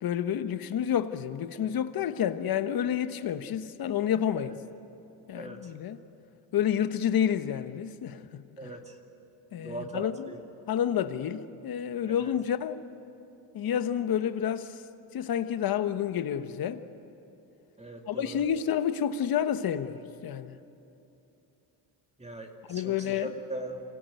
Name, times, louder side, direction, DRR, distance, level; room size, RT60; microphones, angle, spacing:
voice 1, 0.0-4.5 5.3-6.0 6.5-8.7 9.5-10.3 10.7-12.8 13.5-14.8 15.1-16.8 18.1-20.6 22.7-23.3, left 9 dB, 50° left, 1.2 m, -29 dB
voice 2, 5.3-5.7 8.6-9.0 9.6-10.4 12.1-12.2 17.8-18.4 22.2-23.8, right 2 dB, 15° right, 2.5 m, -40 dB
26.0 x 17.5 x 9.3 m
cardioid pair, 100°, 47 cm